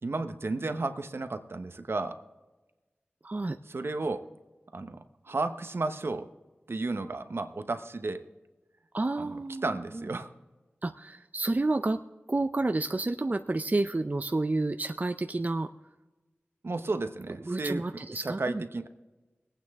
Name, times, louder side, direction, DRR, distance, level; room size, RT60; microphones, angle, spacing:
voice 1, 0.0-2.2 3.7-4.3 4.7-6.3 6.7-8.2 9.2-10.3 16.6-18.9, right 3 dB, 65° right, 8 dB, 0.9 m, -33 dB
voice 2, 3.2-3.6 8.9-9.6 10.0-10.1 10.8-12.0 12.3-15.7 17.5-18.6, right 2 dB, 40° right, 8 dB, 0.5 m, -30 dB
21.5 x 9.0 x 3.5 m, 1.2 s
wide cardioid pair, 50°, 4 cm